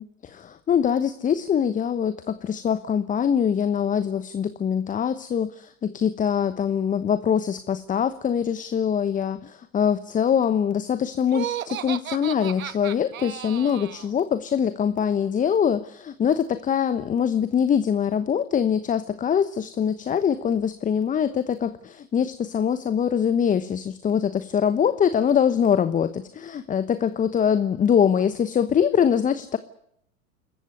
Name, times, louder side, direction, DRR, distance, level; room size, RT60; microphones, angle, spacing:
voice 1, 0.0-29.6, left 8 dB, 20° left, 13 dB, 1.0 m, -23 dB
Laughter, 11.3-14.1, right 11 dB, 75° right, 1.0 m, -34 dB
27.5 x 14.5 x 9.6 m, 0.72 s
hypercardioid pair, 95°, 41 cm